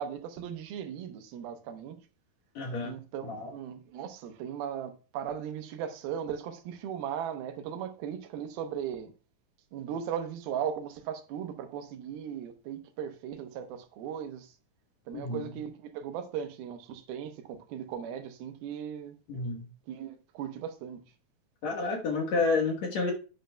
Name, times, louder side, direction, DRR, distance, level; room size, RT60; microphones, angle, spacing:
voice 1, 0.0-2.0 2.8-9.1 9.7-14.5 15.1-19.2 19.9-21.0, right 8 dB, 85° right, 2.9 m, -37 dB
voice 2, 2.6-2.9 3.2-3.5 15.1-15.4 19.3-19.7 21.6-23.1, left 3 dB, 60° left, 2.2 m, -30 dB
10.5 x 10.0 x 2.3 m
omnidirectional pair, 4.2 m